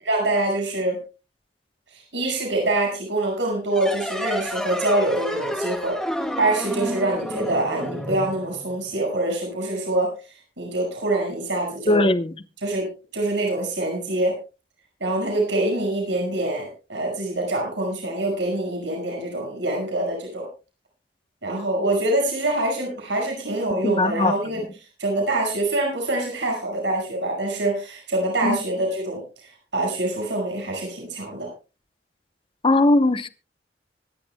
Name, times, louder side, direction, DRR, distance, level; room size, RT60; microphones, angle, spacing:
voice 1, 0.0-1.0 1.9-6.0 6.4-10.1 10.6-12.1 12.6-12.9 13.1-14.4 15.0-20.5 21.4-24.6 25.0-31.5, right 2 dB, 85° right, 5.7 m, -25 dB
sound 1, 3.7-9.0, equal, ahead, 2.1 m, -30 dB
voice 2, 11.9-12.3 23.8-24.3 28.4-28.6 32.6-33.3, left 2 dB, 30° left, 0.9 m, -19 dB
25.0 x 11.0 x 2.2 m
head